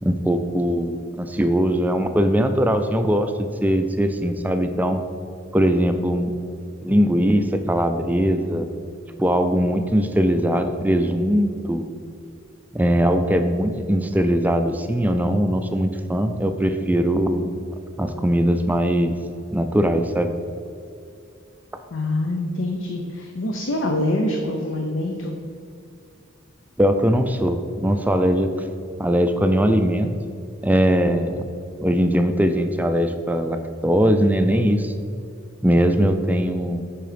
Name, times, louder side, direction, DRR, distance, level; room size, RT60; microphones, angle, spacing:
voice 1, 0.0-5.0 5.5-8.7 9.2-11.8 12.7-17.5 18.0-19.1 19.5-20.3 26.8-28.5 29.0-30.1 30.6-31.4 31.8-34.9 35.6-36.9, equal, 10° right, 7 dB, 0.3 m, -20 dB
voice 2, 21.9-25.4, left 1 dB, 80° left, 3 dB, 0.7 m, -25 dB
7.6 x 4.9 x 5.0 m, 2.5 s
head